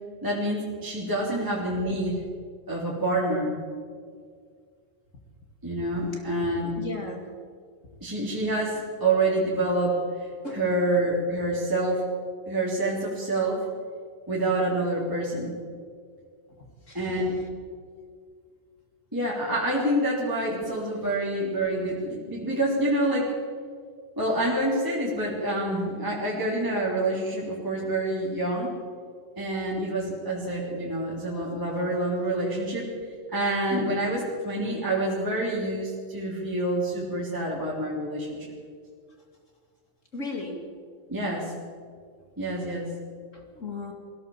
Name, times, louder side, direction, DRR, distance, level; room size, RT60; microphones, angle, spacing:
voice 1, 0.2-2.2 2.7-3.5 5.6-6.7 8.0-10.0 10.5-12.1 12.4-13.6 14.3-15.5 16.9-17.4 19.1-23.3 24.2-28.8 29.4-32.9 33.3-38.5 41.1-41.5 42.4-42.9, right 1 dB, 5° right, -6 dB, 3.1 m, -27 dB
voice 2, 6.8-7.3 10.4-10.6 16.9-17.0 33.7-33.9 40.1-40.6 43.5-43.9, left 3 dB, 30° left, 2 dB, 1.6 m, -34 dB
22.0 x 16.5 x 7.3 m, 2.1 s
omnidirectional pair, 4.4 m